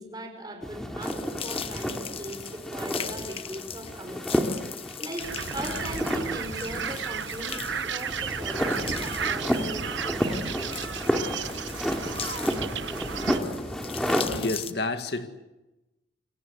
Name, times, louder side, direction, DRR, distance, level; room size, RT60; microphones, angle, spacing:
voice 1, 0.0-4.5 5.0-10.7, right 1 dB, 20° right, 5.3 m, -39 dB
sound 1, 0.6-14.5, equal, 5° left, 2.7 m, -31 dB
sound 2, 1.0-14.7, left 8 dB, 30° left, 1.0 m, -40 dB
sound 3, 5.2-13.4, right 6 dB, 80° right, 1.1 m, -33 dB
voice 2, 14.3-15.3, left 2 dB, 60° left, 2.0 m, -30 dB
28.0 x 23.5 x 8.1 m
head